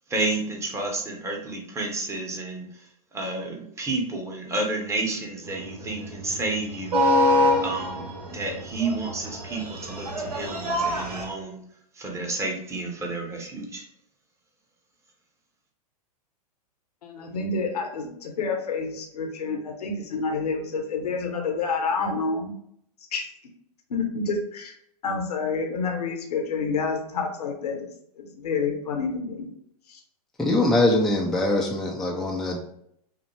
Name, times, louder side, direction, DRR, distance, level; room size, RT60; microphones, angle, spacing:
voice 1, 0.1-7.3 7.5-11.6 11.9-13.8, right 2 dB, 15° right, 1 dB, 0.9 m, -31 dB
sound 1, 5.5-11.3, left 1 dB, 75° right, 1.3 m, -25 dB
voice 2, 17.0-22.5 23.1-23.2 23.9-24.7 25.0-27.9 28.2-29.5 29.9-30.0, left 4 dB, 75° left, 2 dB, 1.0 m, -28 dB
voice 3, 30.4-32.6, left 2 dB, ahead, -1 dB, 0.5 m, -22 dB
5.8 x 2.0 x 3.2 m, 0.70 s
hypercardioid pair, 110°, 20 cm